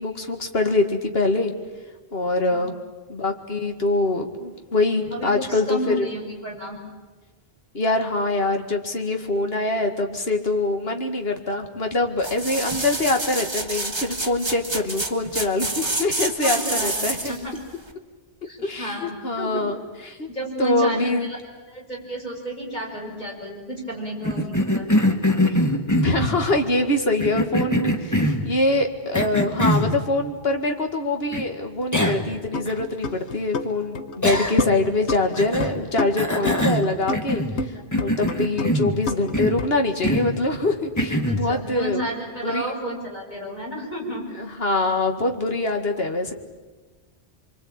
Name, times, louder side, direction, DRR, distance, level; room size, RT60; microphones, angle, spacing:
voice 1, 0.0-1.5 2.1-2.8 3.1-6.1 7.7-17.3 18.6-19.8 20.0-20.3 20.6-21.3 25.4-25.6 25.9-37.4 38.0-42.0 42.4-42.7 44.3-46.3, left 2 dB, 65° left, 5 dB, 2.3 m, -24 dB
voice 2, 5.1-6.8 16.4-16.9 17.3-17.5 18.4-19.7 20.3-21.4 21.7-25.1 36.3-36.4 37.5-37.8 41.2-44.2, equal, 45° left, -1 dB, 6.1 m, -32 dB
sound 1, 12.2-17.4 17.9-18.0, right 2 dB, 25° right, 1.6 m, -28 dB
Cough, 24.2-26.4 27.2-28.5 29.1-29.9 31.3-31.4 31.9-32.3 32.7-32.8 34.2-34.8 35.3-35.7 36.2-37.6 37.9-39.0 39.3-39.6 40.0-40.3 41.0-41.4, equal, 15° left, 1.8 m, -23 dB
sound 2, 32.2-33.7 34.0-35.7 36.0-37.7 38.0-39.7, left 3 dB, 85° left, 1.4 m, -28 dB
25.5 x 23.5 x 8.9 m, 1.3 s
omnidirectional pair, 1.1 m